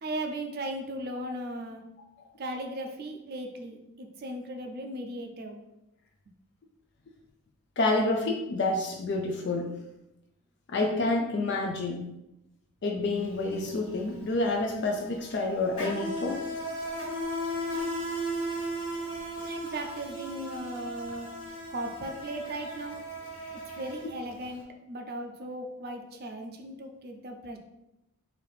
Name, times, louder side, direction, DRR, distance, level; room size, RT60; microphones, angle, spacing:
voice 1, 0.0-1.8 2.4-5.6 19.5-21.3 21.7-23.0 23.8-27.6, right 1 dB, 45° right, 3 dB, 0.4 m, -37 dB
voice 2, 7.8-9.7 10.7-12.0 12.8-16.4, left 2 dB, 50° left, 2 dB, 0.4 m, -28 dB
Insect, 13.1-13.3 13.5-24.5, equal, 75° left, 1.5 m, -36 dB
4.0 x 2.7 x 3.4 m, 0.90 s
head